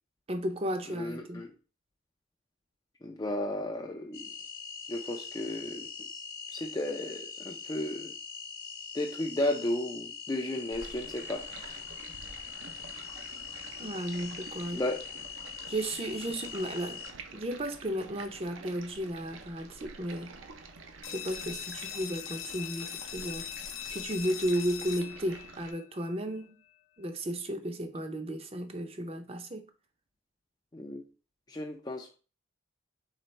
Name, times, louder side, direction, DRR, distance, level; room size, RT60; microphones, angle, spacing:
voice 1, 0.3-1.4 13.8-14.8 15.7-17.0 17.3-20.3 21.1-23.5 23.9-26.5 27.0-29.6, right 1 dB, 30° right, 0.5 m, -34 dB
voice 2, 0.9-1.5 3.0-4.3 4.9-6.1 6.5-8.1 8.9-11.8 14.7-15.0 30.7-31.0 31.5-32.2, left 1 dB, 20° left, 0.4 m, -34 dB
sound 1, 4.1-17.1, left 7 dB, 50° left, 0.7 m, -43 dB
Stream, 10.7-25.7, right 4 dB, 75° right, 0.7 m, -49 dB
sound 2, 21.0-26.5, left 10 dB, 80° left, 0.4 m, -41 dB
4.0 x 3.8 x 3.2 m
head